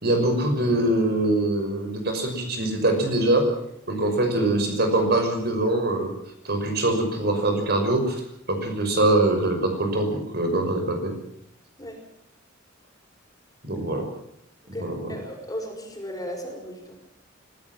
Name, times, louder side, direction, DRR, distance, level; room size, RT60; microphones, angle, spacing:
voice 1, 0.0-3.5 3.9-6.2 6.4-8.2 8.5-11.1 13.6-14.0 14.7-15.1, right 2 dB, 55° right, 5 dB, 5.9 m, -23 dB
voice 2, 14.7-17.0, equal, 20° left, 2 dB, 5.5 m, -36 dB
25.0 x 15.5 x 7.6 m, 0.76 s
head